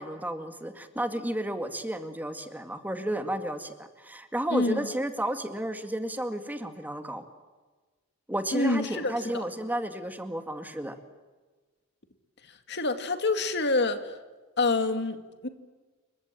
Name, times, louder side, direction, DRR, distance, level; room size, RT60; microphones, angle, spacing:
voice 1, 0.0-7.2 8.3-11.0, right 1 dB, 10° right, 2.1 m, -32 dB
voice 2, 4.5-4.9 8.5-9.4 12.7-14.1 14.6-15.5, left 3 dB, 55° left, 2.3 m, -27 dB
28.5 x 24.0 x 7.7 m
head